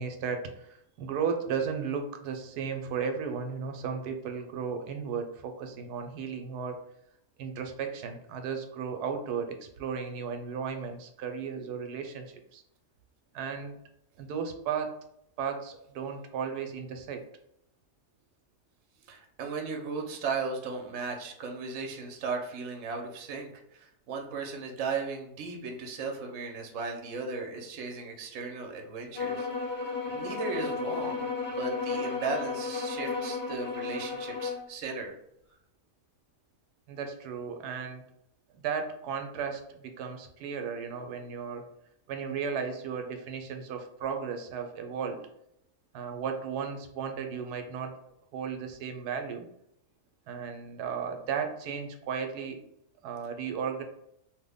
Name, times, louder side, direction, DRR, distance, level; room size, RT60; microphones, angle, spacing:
voice 1, 0.0-6.8 7.4-12.3 12.5-12.6 13.3-13.8 14.2-14.9 15.4-17.2 36.9-38.0 38.5-41.6 42.1-45.2 45.9-47.9 48.3-49.5 50.3-52.6 53.0-53.8, right 6 dB, 85° right, 5 dB, 1.1 m, -35 dB
voice 2, 19.1-29.7 30.0-35.1, right 4 dB, 65° right, 2 dB, 0.9 m, -36 dB
sound 1, 29.1-34.7, left 4 dB, 10° left, 0.6 m, -33 dB
3.1 x 2.2 x 3.4 m, 0.77 s
omnidirectional pair, 1.7 m